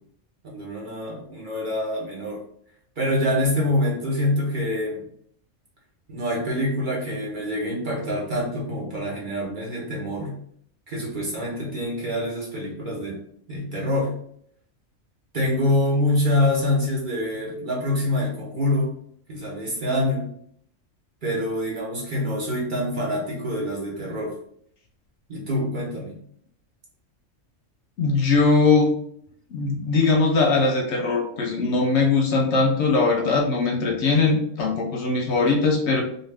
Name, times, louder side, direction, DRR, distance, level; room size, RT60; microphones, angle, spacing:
voice 1, 0.5-2.4 3.0-5.0 6.1-10.3 10.9-13.2 13.5-14.1 15.3-18.9 19.3-20.3 21.2-24.3 25.3-26.2, left 1 dB, 45° right, -4 dB, 0.8 m, -25 dB
voice 2, 28.0-28.9 29.5-36.0, left 3 dB, 65° left, 1 dB, 0.8 m, -20 dB
2.6 x 2.4 x 3.2 m, 0.65 s
omnidirectional pair, 1.4 m